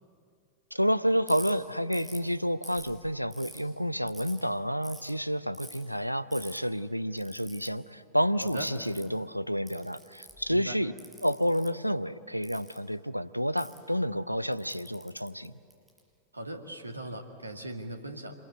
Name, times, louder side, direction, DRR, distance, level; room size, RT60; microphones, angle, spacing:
voice 1, 0.7-10.9 11.2-15.5, equal, 90° left, 16 dB, 0.6 m, -29 dB
Ratchet pawl, 1.3-1.5 1.9-2.2 2.6-3.6 4.1-4.4 4.8-5.1 5.5-5.8 6.3-6.6 7.2-7.7 8.4-9.1 9.7-10.4 11.0-11.7 12.4-12.8 13.6-13.8 14.5-16.0, right 1 dB, 5° right, 6.3 m, -47 dB
voice 2, 16.3-18.3, right 1 dB, 80° right, 5 dB, 2.0 m, -39 dB
26.5 x 21.5 x 8.3 m, 2.4 s
figure-of-eight pair, 90°, 0 cm